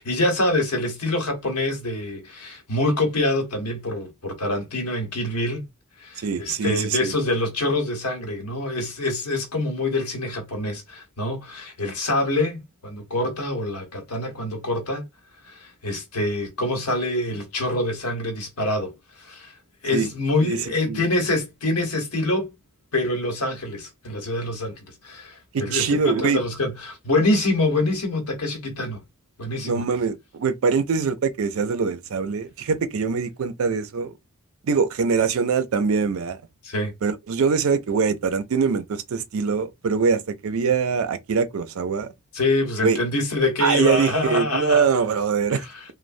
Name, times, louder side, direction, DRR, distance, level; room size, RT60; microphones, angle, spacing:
voice 1, 0.0-5.7 6.0-15.0 15.5-18.9 19.2-19.5 19.8-22.5 22.9-29.0 29.4-29.8 36.6-36.9 42.3-44.8 45.5-45.6, left 2 dB, 85° left, 1.1 m, -25 dB
voice 2, 6.2-7.1 19.9-20.1 20.4-21.0 25.5-26.4 29.6-34.1 34.6-36.4 37.0-42.1 42.8-43.0 43.6-45.6, right 5 dB, 70° right, 0.4 m, -23 dB
3.1 x 2.1 x 2.5 m
head